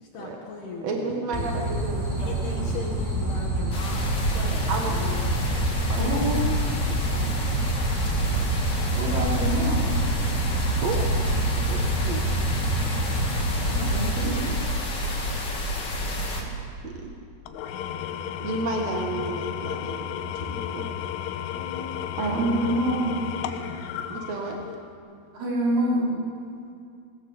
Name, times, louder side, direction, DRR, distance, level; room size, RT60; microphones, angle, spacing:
voice 1, 0.0-1.7 2.2-5.3 21.5-22.4, left 4 dB, 65° left, 0 dB, 3.2 m, -38 dB
voice 2, 0.8-2.8 4.7-5.3 5.6-6.0 6.9-7.4 10.8-11.0 11.7-11.8 12.0-12.2 13.7-14.5 16.4-16.5 16.8-17.2 18.4-20.9 22.2-22.6 24.1-24.6, right 3 dB, 75° right, 2 dB, 1.5 m, -32 dB
sound 1, 1.3-14.1, right 1 dB, 10° right, 4.7 m, -27 dB
sound 2, 3.7-16.4, left 1 dB, 35° left, 2.0 m, -29 dB
voice 3, 5.9-6.5 8.9-9.9 13.7-14.4 22.2-23.1 25.3-26.1, right 1 dB, 35° right, -5 dB, 5.7 m, -26 dB
Engine / Tools, 17.5-24.9, left 10 dB, 85° left, 3.4 m, -33 dB
20.0 x 18.5 x 7.2 m, 2.3 s
omnidirectional pair, 5.6 m